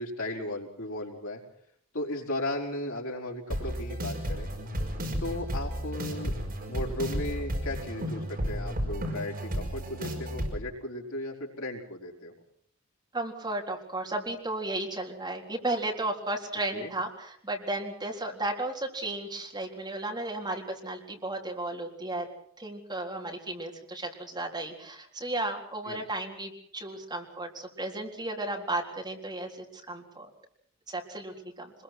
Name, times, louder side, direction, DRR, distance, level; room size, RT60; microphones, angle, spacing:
voice 1, 0.0-1.4 1.9-4.5 5.2-6.4 6.7-12.3 16.7-16.9 25.9-26.1, left 1 dB, 70° left, 0 dB, 4.8 m, -36 dB
sound 1, 3.5-10.5, equal, 45° right, 5.7 m, -33 dB
voice 2, 13.1-22.3 22.6-30.3 30.9-31.7, right 2 dB, 20° right, 0 dB, 3.8 m, -34 dB
25.5 x 22.0 x 6.2 m, 0.62 s
head